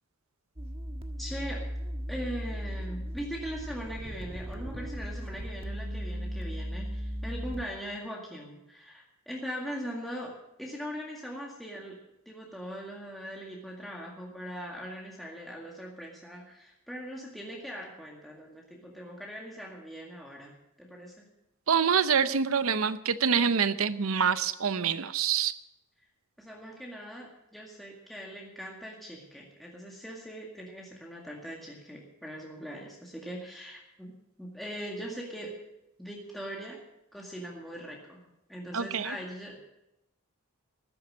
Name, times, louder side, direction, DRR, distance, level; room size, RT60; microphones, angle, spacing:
sound 1, 0.6-7.7, equal, 25° right, 1.4 m, -37 dB
voice 1, 1.2-1.7 2.1-12.0 12.3-21.3 26.4-35.6 36.0-36.8 37.1-39.7, equal, ahead, -3 dB, 2.0 m, -41 dB
voice 2, 21.7-25.5 38.7-39.1, right 6 dB, 75° right, 13 dB, 0.8 m, -26 dB
14.5 x 12.0 x 6.4 m, 0.88 s
head